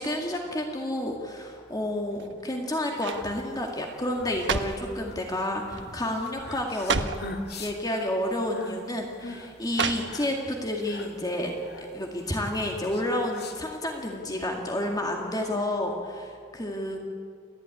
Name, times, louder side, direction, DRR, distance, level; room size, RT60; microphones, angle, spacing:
voice 1, 0.0-7.0 7.6-11.5 11.8-17.0, left 1 dB, 20° left, 1 dB, 2.1 m, -30 dB
sound 1, 2.1-2.5 3.0-3.3 4.1-4.9 5.7-6.0 6.3-6.4 6.7-7.3 8.2-8.4 9.7-10.5 10.9-11.0, right 5 dB, 70° right, 1.2 m, -31 dB
sound 2, 2.9-14.1, left 2 dB, 60° left, 2.1 m, -43 dB
29.5 x 12.5 x 9.8 m, 2.2 s
head